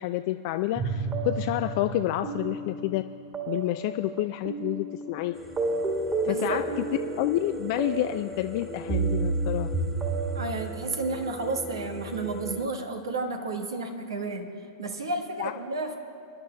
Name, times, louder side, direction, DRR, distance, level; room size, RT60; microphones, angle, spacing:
voice 1, 0.0-3.0 3.5-5.3 6.2-6.6 7.2-9.7 15.4-15.5, left 15 dB, 55° left, 8 dB, 0.3 m, -29 dB
sound 1, 0.7-10.5, right 3 dB, 25° right, 1.9 m, -31 dB
sound 2, 5.3-12.7, equal, 5° right, 1.5 m, -41 dB
voice 2, 6.2-6.6 10.3-16.0, right 3 dB, 85° right, 4 dB, 1.3 m, -32 dB
27.0 x 11.0 x 2.3 m, 2.4 s
hypercardioid pair, 105°, 2 cm